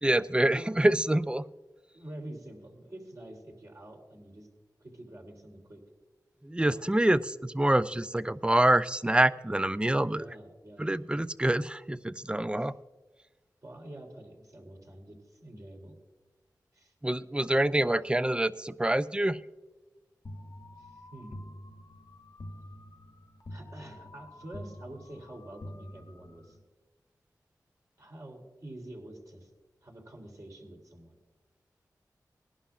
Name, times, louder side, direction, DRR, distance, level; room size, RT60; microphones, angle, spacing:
voice 1, 0.0-1.4 6.4-10.2 10.8-12.8 17.0-19.4, right 1 dB, 15° right, 14 dB, 0.5 m, -26 dB
voice 2, 1.9-4.5 4.8-5.8 6.6-6.9 10.0-11.2 12.6-12.7 13.6-16.0 16.7-16.9 20.8-21.6 23.5-26.6 28.0-29.5 29.8-31.2, right 1 dB, 55° right, 0 dB, 3.4 m, -47 dB
sound 1, 20.2-26.6, left 1 dB, 65° left, 1.1 m, -47 dB
19.5 x 11.5 x 2.4 m, 1.2 s
cardioid pair, 50°, 7 cm